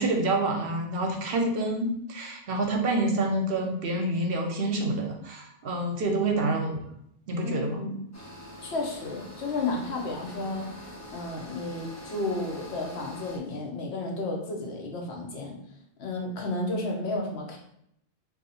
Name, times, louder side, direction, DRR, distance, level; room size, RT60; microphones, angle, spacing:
voice 1, 0.0-6.8 7.3-7.8, right 2 dB, 65° right, 2 dB, 0.7 m, -27 dB
voice 2, 7.4-8.0 8.6-10.7 11.1-15.6 16.0-17.6, left 2 dB, 75° left, 1 dB, 1.0 m, -32 dB
sound 1, 8.1-13.4, left 1 dB, 25° left, 0.4 m, -44 dB
2.7 x 2.4 x 4.0 m, 0.73 s
omnidirectional pair, 1.1 m